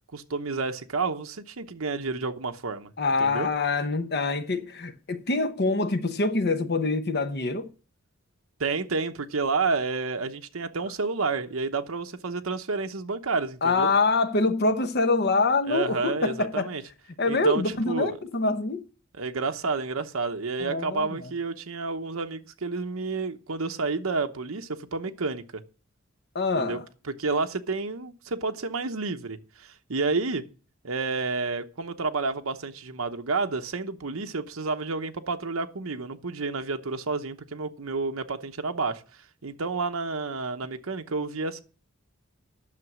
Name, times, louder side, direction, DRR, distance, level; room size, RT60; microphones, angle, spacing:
voice 1, 0.1-2.9 3.2-3.5 8.6-13.9 15.7-16.8 17.2-18.2 19.2-25.6 26.6-26.8 27.0-30.4 30.8-41.6, right 4 dB, 85° right, 0.9 m, -30 dB
voice 2, 3.0-7.7 13.6-16.7 17.2-18.8 20.6-21.1 26.3-26.8, left 3 dB, 50° left, 0.9 m, -25 dB
11.0 x 6.7 x 6.1 m
head